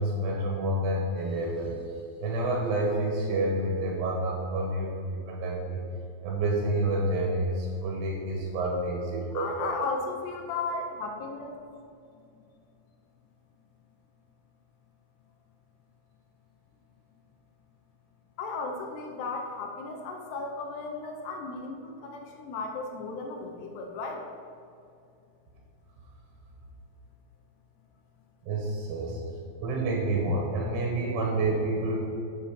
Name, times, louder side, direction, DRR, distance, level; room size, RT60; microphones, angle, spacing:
voice 1, 0.0-1.8 2.2-5.8 6.2-9.7 28.4-29.2 29.6-32.0, right 2 dB, 90° right, -2 dB, 3.6 m, -28 dB
voice 2, 9.3-11.6 12.2-12.3 18.4-24.3, left 3 dB, 80° left, 2 dB, 2.6 m, -35 dB
7.7 x 5.2 x 5.7 m, 2.4 s
omnidirectional pair, 5.3 m